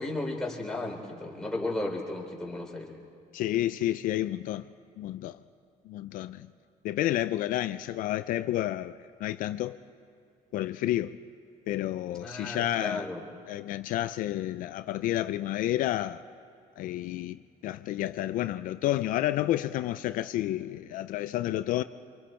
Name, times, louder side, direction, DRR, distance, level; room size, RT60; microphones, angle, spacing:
voice 1, 0.0-3.0 12.2-13.2, left 2 dB, 5° left, 3.6 m, -34 dB
voice 2, 3.3-4.7 5.0-5.4 5.9-6.5 6.8-9.8 10.5-11.2 11.7-13.1 13.5-16.2 16.8-21.8, left 14 dB, 70° left, 0.5 m, -30 dB
28.5 x 25.5 x 4.4 m
cardioid pair, 150°, 14 cm